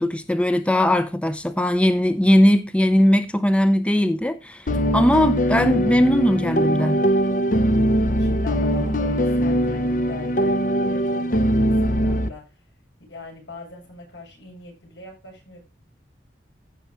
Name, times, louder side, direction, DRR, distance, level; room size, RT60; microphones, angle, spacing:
voice 1, 0.0-7.0, left 1 dB, 5° left, 0.6 m, -19 dB
sound 1, 4.7-12.3, equal, 45° left, 0.8 m, -21 dB
voice 2, 8.2-12.6 13.1-15.6, left 3 dB, 85° left, 7.8 m, -41 dB
15.0 x 6.1 x 3.6 m
head